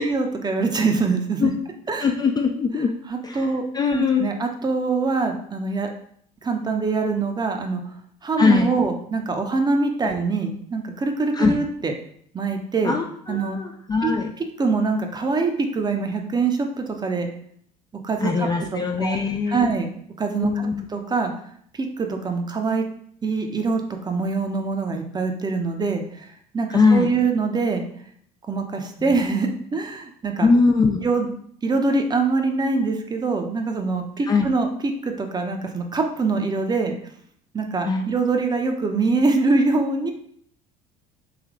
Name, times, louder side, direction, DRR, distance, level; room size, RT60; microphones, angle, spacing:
voice 1, 0.0-1.5 1.9-2.1 3.1-3.6 3.9-5.9 6.4-7.8 8.2-11.9 12.3-13.0 13.3-13.6 14.0-17.3 18.0-19.2 19.5-19.9 20.2-21.3 21.8-22.9 23.2-26.2 26.5-27.8 28.5-30.5 31.0-31.3 31.6-36.9 37.5-40.1, right 4 dB, 20° right, 4 dB, 0.6 m, -24 dB
voice 2, 2.0-2.9 3.2-3.5 3.7-4.3 8.4-8.7 10.0-10.1 11.3-11.6 12.8-14.3 18.2-19.7 20.4-20.9 26.7-27.1 29.1-29.2 30.4-31.1 34.3-34.5 37.9-38.0, left 4 dB, 20° left, 3 dB, 0.4 m, -21 dB
3.3 x 3.1 x 3.6 m, 0.64 s
hypercardioid pair, 70°, 20 cm